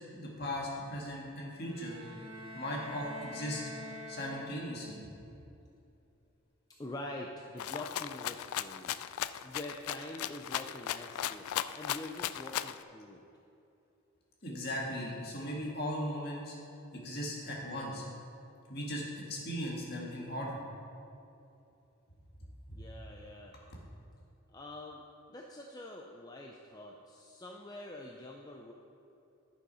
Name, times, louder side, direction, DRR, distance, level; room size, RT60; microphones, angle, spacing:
voice 1, 0.1-2.0 2.5-3.7 4.1-5.0 14.4-16.6 16.9-18.0 18.7-19.0 19.3-20.6, equal, 45° left, -3 dB, 1.9 m, -38 dB
sound 1, 1.6-4.9, left 1 dB, 75° right, 1.6 m, -46 dB
voice 2, 6.8-9.0 9.4-11.5 11.7-13.2 22.7-23.5 24.5-25.0 25.3-28.7, left 1 dB, 20° left, 0 dB, 0.5 m, -45 dB
Rattle (instrument), 7.6-12.8, left 11 dB, 90° left, 0.3 m, -37 dB
10.5 x 6.4 x 5.5 m, 2.8 s
head